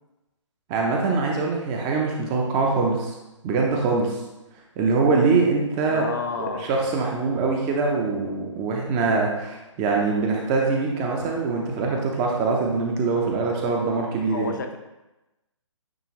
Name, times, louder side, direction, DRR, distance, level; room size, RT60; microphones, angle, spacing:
voice 1, 0.7-3.1 3.4-4.2 4.8-6.1 6.4-14.5, right 4 dB, 20° right, 0 dB, 0.8 m, -23 dB
voice 2, 5.9-6.7 14.3-14.8, left 5 dB, 35° left, 5 dB, 0.4 m, -30 dB
8.9 x 3.4 x 3.1 m, 1.0 s
figure-of-eight pair, 135°, 16 cm